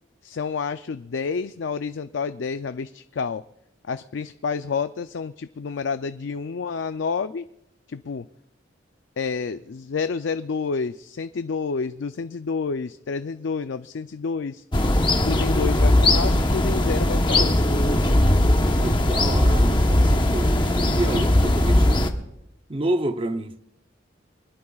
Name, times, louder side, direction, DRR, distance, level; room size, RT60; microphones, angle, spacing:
voice 1, 0.2-3.4 3.9-7.4 7.9-8.3 9.2-14.6 15.2-17.5, left 5 dB, 75° left, 0.4 m, -29 dB
sound 1, 14.7-22.1, left 1 dB, 25° left, 1.0 m, -19 dB
voice 2, 18.8-22.0 22.7-23.5, right 1 dB, 30° right, 0.7 m, -29 dB
24.0 x 19.5 x 2.4 m
head